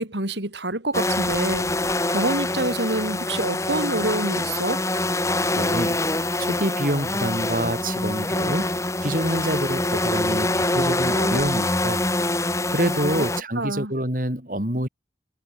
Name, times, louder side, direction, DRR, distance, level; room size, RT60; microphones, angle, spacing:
voice 1, 0.0-1.7 2.1-4.8 13.1-13.3 13.6-13.9, right 2 dB, 85° right, 4.8 m, -26 dB
sound 1, 0.9-13.4, left 2 dB, 15° left, 2.9 m, -25 dB
voice 2, 5.5-6.0 6.4-12.1 12.7-14.9, right 1 dB, 50° right, 7.0 m, -27 dB
head